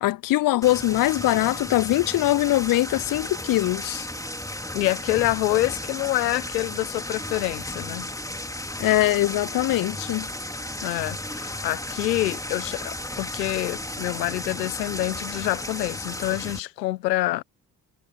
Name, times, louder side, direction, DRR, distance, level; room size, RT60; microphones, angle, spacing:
voice 1, 0.0-4.1 8.8-10.3, left 16 dB, 45° left, 0.6 m, -22 dB
sound 1, 0.6-16.6, left 1 dB, 5° left, 2.7 m, -34 dB
voice 2, 4.7-8.1 10.8-17.4, left 17 dB, 85° left, 1.1 m, -27 dB
figure-of-eight pair, 40°, 48 cm